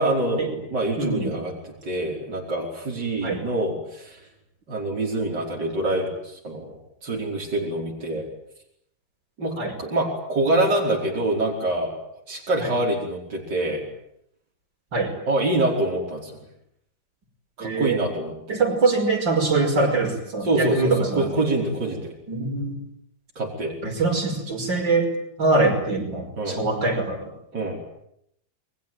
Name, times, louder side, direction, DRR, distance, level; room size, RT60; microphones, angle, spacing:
voice 1, 0.0-4.2 4.7-8.2 9.4-11.9 12.3-13.9 15.3-16.4 17.6-18.6 20.4-22.1 23.4-23.7 26.4-26.6 27.5-27.8, right 1 dB, 65° right, -1 dB, 5.8 m, -25 dB
voice 2, 1.0-1.4 3.2-3.4 9.6-9.7 12.6-12.7 14.9-15.1 17.6-18.0 18.5-21.3 22.3-22.8 23.8-25.1 25.4-27.3, right 3 dB, 85° right, 3 dB, 6.2 m, -23 dB
29.5 x 22.0 x 9.1 m, 0.75 s
omnidirectional pair, 2.0 m